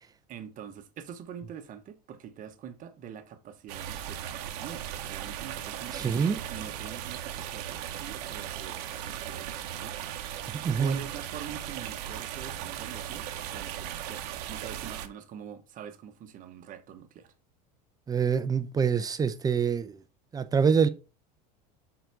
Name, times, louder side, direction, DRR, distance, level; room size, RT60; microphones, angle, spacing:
voice 1, 0.3-10.2 10.5-17.3, right 9 dB, 40° right, 1.1 m, -45 dB
sound 1, 3.7-15.1, right 10 dB, 75° right, 0.9 m, -37 dB
voice 2, 5.9-6.4 10.6-11.0 18.1-20.0 20.3-20.9, right 6 dB, 20° right, 0.6 m, -25 dB
6.7 x 3.9 x 4.5 m
supercardioid pair, 120°, 20 cm